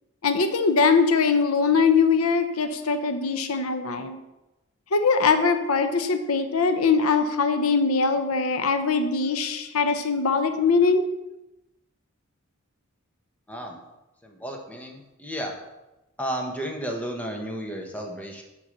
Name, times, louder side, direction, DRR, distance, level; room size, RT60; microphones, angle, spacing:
voice 1, 0.2-4.2 4.9-11.0, left 4 dB, 90° left, 8 dB, 0.8 m, -22 dB
voice 2, 13.5-13.8 14.2-15.5 16.2-18.4, equal, 5° left, 1 dB, 1.1 m, -33 dB
6.6 x 5.5 x 6.6 m, 0.98 s
head